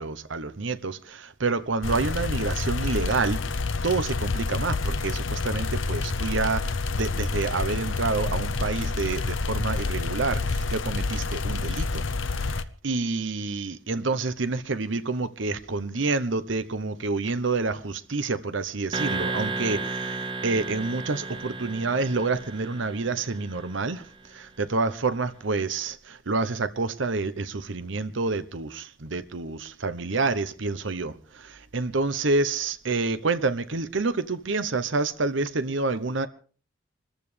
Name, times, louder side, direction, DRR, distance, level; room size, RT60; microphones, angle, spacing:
voice 1, 0.0-24.0 24.3-36.3, right 3 dB, 70° right, 0.9 m, -28 dB
sound 1, 1.8-12.6, left 3 dB, 75° left, 0.8 m, -28 dB
sound 2, 18.9-23.8, right 3 dB, 25° right, 0.9 m, -33 dB
25.5 x 14.0 x 3.4 m
head